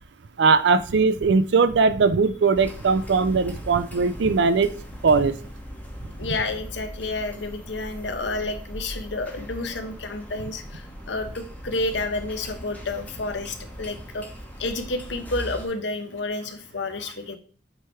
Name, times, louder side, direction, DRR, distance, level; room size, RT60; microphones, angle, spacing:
voice 1, 0.4-4.7 5.0-5.4, right 4 dB, 65° right, 12 dB, 0.4 m, -20 dB
sound 1, 2.5-15.7, equal, 10° left, 0.9 m, -39 dB
voice 2, 6.2-14.3 14.6-17.4, left 2 dB, 70° left, 7 dB, 0.9 m, -30 dB
8.1 x 3.3 x 4.4 m, 0.41 s
head